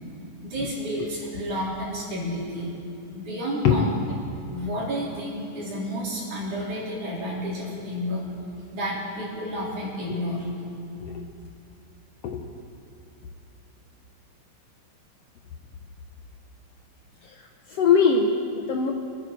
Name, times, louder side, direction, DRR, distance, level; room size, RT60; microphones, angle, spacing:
voice 1, 0.4-2.7 3.1-3.9 4.5-8.2 8.7-10.5, equal, 70° right, -6 dB, 5.2 m, -31 dB
voice 2, 17.2-18.9, left 5 dB, 70° left, 3 dB, 1.5 m, -22 dB
25.5 x 9.8 x 4.6 m, 2.8 s
omnidirectional pair, 3.6 m